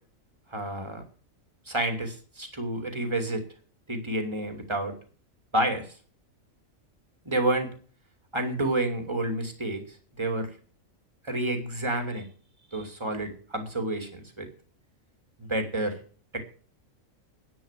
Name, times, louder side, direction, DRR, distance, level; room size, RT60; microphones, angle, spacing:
voice 1, 0.5-1.0 1.7-3.4 3.9-4.9 5.5-5.9 7.2-7.7 8.3-9.8 10.2-10.5 11.2-12.3 12.7-14.5 15.4-16.0 16.3-16.5, right 1 dB, 20° right, 5 dB, 2.9 m, -29 dB
11.0 x 10.5 x 7.5 m, 0.42 s
omnidirectional pair, 1.4 m